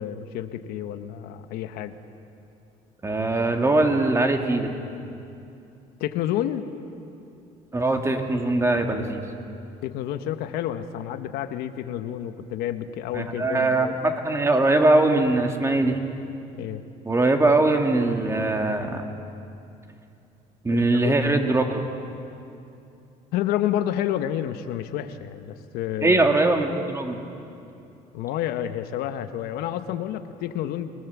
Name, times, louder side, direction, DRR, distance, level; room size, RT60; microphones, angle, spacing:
voice 1, 0.0-1.9 6.0-6.7 9.8-14.0 16.6-16.8 20.7-21.1 23.3-26.3 28.1-30.9, left 11 dB, 80° left, 9 dB, 1.1 m, -29 dB
voice 2, 3.0-4.7 7.7-9.2 13.1-16.0 17.1-19.0 20.6-21.8 26.0-27.2, right 2 dB, 20° right, 3 dB, 2.4 m, -21 dB
27.0 x 19.0 x 7.2 m, 2.7 s
cardioid pair, 100°, 16 cm